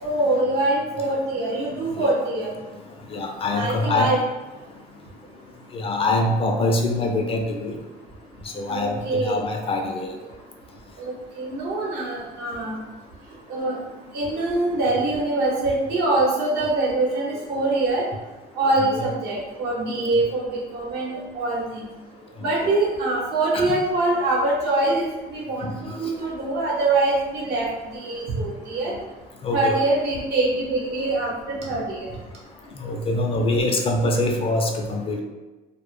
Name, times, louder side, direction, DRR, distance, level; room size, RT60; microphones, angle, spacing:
voice 1, 0.0-2.5 3.5-4.2 8.7-9.4 11.0-12.8 13.5-13.8 14.1-18.0 18.6-21.8 22.4-25.0 25.3-27.7 27.9-28.9 29.5-32.1, right 2 dB, 75° right, -4 dB, 0.8 m, -24 dB
voice 2, 3.1-4.1 5.7-7.8 8.4-10.2 18.9-19.0 22.6-22.7 23.5-23.7 25.6-25.7 29.4-29.8 32.8-35.2, left 2 dB, 35° left, 2 dB, 0.3 m, -24 dB
2.0 x 2.0 x 3.1 m, 1.2 s
cardioid pair, 110°, 17 cm